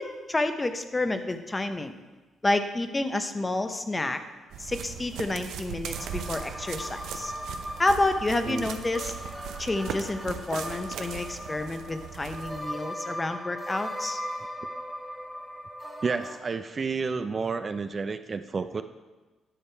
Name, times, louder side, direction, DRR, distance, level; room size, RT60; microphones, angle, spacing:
voice 1, 0.0-2.0 2.4-4.2 4.6-7.3 7.8-9.1 9.6-14.2, left 2 dB, 20° left, 8 dB, 0.7 m, -29 dB
sound 1, 4.5-12.6, right 8 dB, 80° right, 0.7 m, -39 dB
sound 2, 5.9-16.4, equal, 5° right, 1.3 m, -39 dB
voice 2, 16.0-18.8, right 4 dB, 35° right, 10 dB, 0.4 m, -30 dB
10.0 x 6.6 x 4.5 m, 1.2 s
cardioid pair, 90°, 0 cm